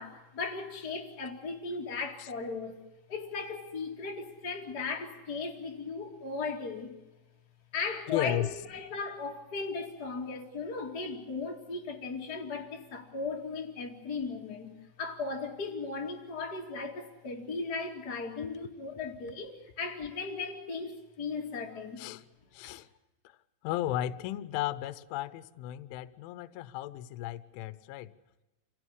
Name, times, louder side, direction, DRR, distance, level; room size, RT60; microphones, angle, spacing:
voice 1, 0.0-2.7 3.1-6.9 7.7-14.7 15.0-22.0 22.6-22.7, left 4 dB, 40° left, 1.4 m, -37 dB
voice 2, 8.1-8.5 22.0-22.2 22.5-22.9 23.2-23.4 23.6-28.1, left 14 dB, 75° left, 3.1 m, -35 dB
27.5 x 17.5 x 8.1 m
omnidirectional pair, 6.0 m